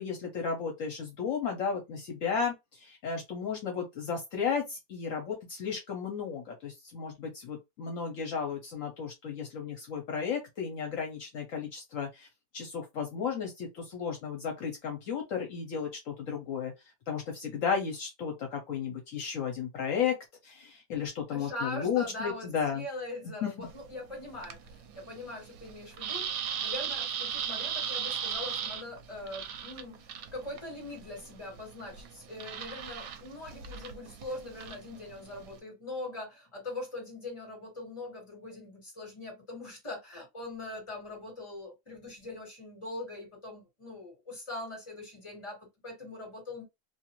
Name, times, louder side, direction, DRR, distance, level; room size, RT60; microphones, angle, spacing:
voice 1, 0.0-12.3 12.5-16.7 17.1-20.1 20.4-22.8 23.4-23.7, left 6 dB, 70° left, 1.1 m, -34 dB
voice 2, 21.3-46.6, left 2 dB, 20° left, 1.4 m, -42 dB
sound 1, 23.6-35.6, right 8 dB, 75° right, 1.0 m, -38 dB
2.6 x 2.4 x 2.9 m
omnidirectional pair, 1.5 m